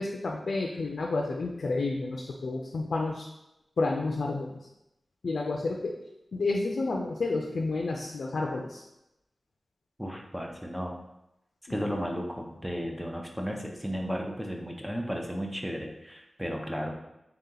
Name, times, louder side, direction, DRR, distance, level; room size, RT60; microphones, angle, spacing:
voice 1, 0.0-3.3 3.8-4.7 5.2-6.0 6.3-8.8, left 3 dB, 75° left, 0 dB, 0.4 m, -30 dB
voice 2, 10.0-10.9 11.7-16.9, equal, 5° right, 1 dB, 0.5 m, -34 dB
3.5 x 2.8 x 3.8 m, 0.89 s
wide cardioid pair, 105°, 0 cm